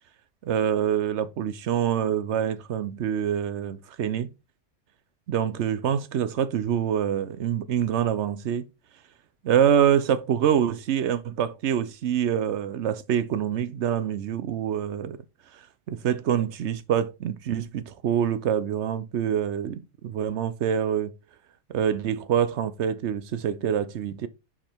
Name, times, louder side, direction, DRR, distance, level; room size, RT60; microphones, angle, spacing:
voice 1, 0.5-4.3 5.3-8.7 9.4-15.2 15.9-21.1 21.7-24.3, right 9 dB, 70° right, 0.9 m, -25 dB
7.3 x 5.0 x 3.5 m
omnidirectional pair, 1.3 m